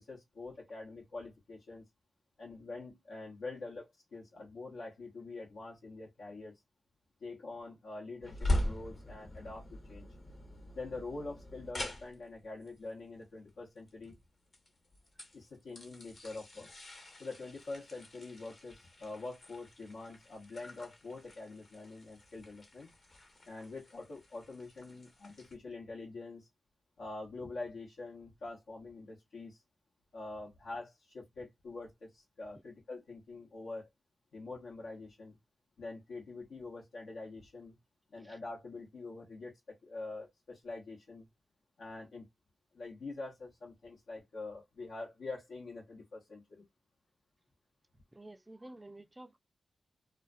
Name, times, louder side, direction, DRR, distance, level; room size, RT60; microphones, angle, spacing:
voice 1, 0.0-1.8 2.4-6.5 7.2-10.1 10.7-14.1 15.3-16.7 17.2-22.9 23.4-26.5 27.0-29.6 30.1-33.9 34.3-35.4 35.8-37.8 38.1-39.5 39.8-41.3 41.8-42.3 42.7-46.6, left 3 dB, 80° left, 0.8 m, -45 dB
sound 1, 8.2-25.5, left 1 dB, 55° left, 1.0 m, -42 dB
voice 2, 48.1-49.4, right 1 dB, 20° right, 0.3 m, -51 dB
2.3 x 2.3 x 2.4 m
cardioid pair, 50°, 0 cm